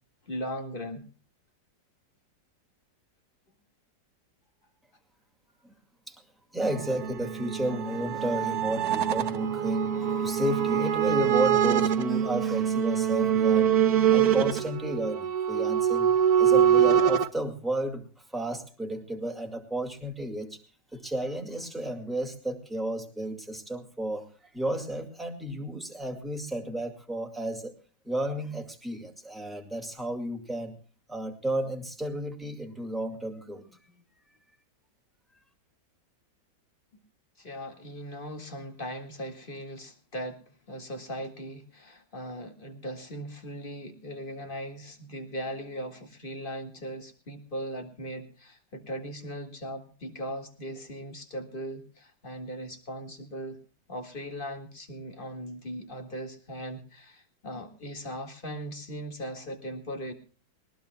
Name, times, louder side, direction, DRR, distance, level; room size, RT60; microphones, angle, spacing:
voice 1, 0.3-1.0 7.6-7.7 33.6-33.7 37.4-40.4 40.7-53.6 53.9-60.1, equal, 30° left, 5 dB, 2.0 m, -39 dB
voice 2, 6.5-13.8 14.1-20.6 20.9-27.7 28.0-30.8 31.1-33.6, right 1 dB, ahead, 3 dB, 2.1 m, -32 dB
sound 1, 6.6-17.3, right 9 dB, 65° right, 1.3 m, -24 dB
20.5 x 19.5 x 2.3 m, 0.38 s
omnidirectional pair, 1.9 m